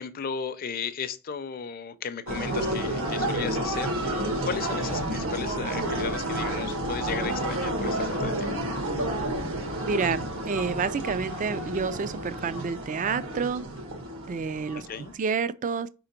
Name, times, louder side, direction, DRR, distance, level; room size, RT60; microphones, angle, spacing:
voice 1, 0.0-8.5 14.9-15.1, left 6 dB, 45° left, 0.5 m, -35 dB
sound 1, 2.3-15.1, right 1 dB, 75° right, 1.4 m, -30 dB
voice 2, 9.8-13.6 14.3-15.9, right 5 dB, 35° right, 0.3 m, -29 dB
5.0 x 3.8 x 5.8 m
head